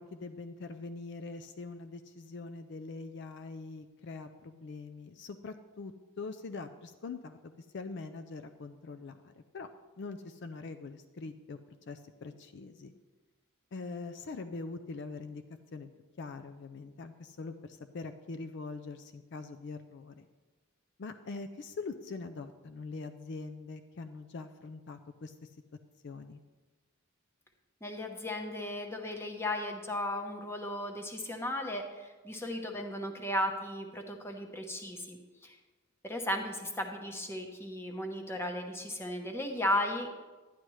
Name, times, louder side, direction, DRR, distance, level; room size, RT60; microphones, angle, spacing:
voice 1, 0.0-9.7 10.0-11.6 11.9-12.9 13.7-15.4 15.7-15.9 16.2-20.3 21.0-25.5 26.0-26.4, left 3 dB, 55° left, 9 dB, 0.4 m, -43 dB
voice 2, 27.8-35.6 36.0-40.2, left 1 dB, 10° left, 3 dB, 0.9 m, -35 dB
11.0 x 10.0 x 3.1 m, 1.3 s
head